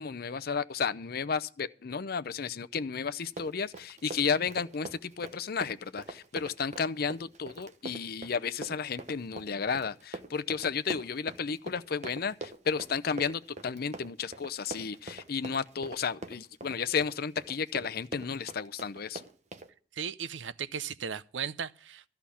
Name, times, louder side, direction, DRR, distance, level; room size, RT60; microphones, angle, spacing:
voice 1, 0.0-19.2, left 6 dB, 55° left, 0.6 m, -33 dB
Run, 3.2-19.7, right 2 dB, 40° right, 1.1 m, -43 dB
voice 2, 19.9-22.0, right 7 dB, 90° right, 0.6 m, -36 dB
13.5 x 5.8 x 8.4 m
head